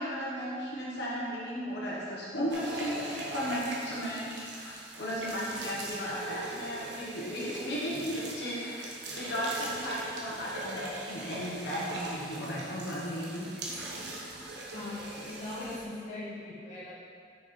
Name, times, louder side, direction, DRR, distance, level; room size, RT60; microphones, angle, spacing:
voice 1, 0.0-8.9 9.1-13.6, equal, 70° left, -7 dB, 1.4 m, -35 dB
sound 1, 2.5-15.8, right 2 dB, 85° right, 1.2 m, -41 dB
voice 2, 14.7-16.9, left 2 dB, 40° left, -8 dB, 1.8 m, -40 dB
6.8 x 5.9 x 4.3 m, 2.3 s
head